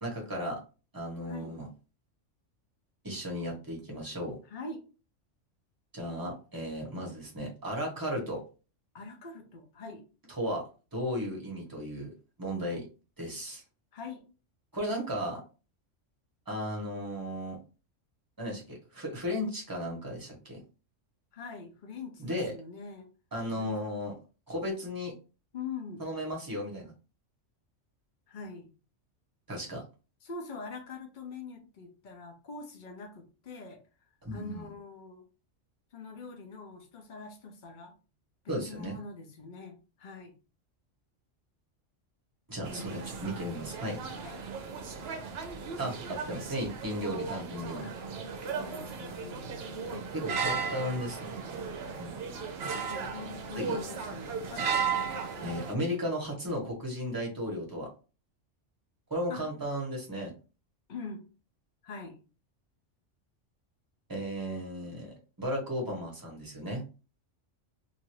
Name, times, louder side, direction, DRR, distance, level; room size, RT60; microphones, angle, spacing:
voice 1, 0.0-0.6 0.9-1.7 3.0-4.4 5.9-8.4 10.3-10.6 10.9-12.1 12.4-12.9 13.2-13.6 14.7-15.4 16.5-17.6 18.4-20.6 22.2-22.5 23.3-24.2 24.5-25.1 26.0-26.9 29.5-29.8 34.2-34.7 38.5-39.0 42.5-44.0 45.8-47.9 50.1-51.3 52.0-52.2 53.5-53.8 55.4-57.9 59.1-60.3 64.1-66.8, equal, 20° right, -1 dB, 1.0 m, -35 dB
voice 2, 1.2-1.6 4.5-4.8 8.9-10.0 13.9-14.2 21.3-23.1 23.5-23.7 25.5-26.0 28.3-28.7 30.2-33.8 34.3-35.3 35.9-37.9 38.4-40.3 42.7-43.1 44.2-44.4 47.8-47.9 48.5-50.1 52.9-54.7 59.3-59.5 60.9-61.2 61.8-62.2, left 4 dB, 45° left, 4 dB, 0.8 m, -44 dB
sound 1, 42.6-55.7, right 5 dB, 60° right, 0.8 m, -36 dB
2.8 x 2.5 x 3.0 m, 0.33 s
omnidirectional pair, 1.3 m